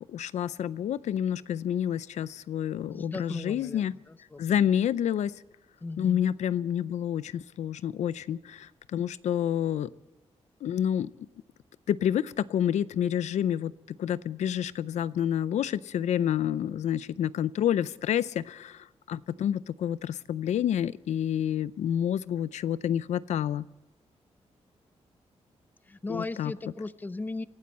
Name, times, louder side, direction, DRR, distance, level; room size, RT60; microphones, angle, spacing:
voice 1, 0.1-3.9 4.4-5.3 6.0-9.9 10.6-11.1 11.9-23.6 26.1-26.5, left 10 dB, 90° left, 18 dB, 0.5 m, -29 dB
voice 2, 2.9-4.6 5.8-6.2 25.9-27.5, left 3 dB, 15° left, 15 dB, 0.5 m, -37 dB
26.5 x 12.5 x 4.2 m, 1.1 s
wide cardioid pair, 135°, 12 cm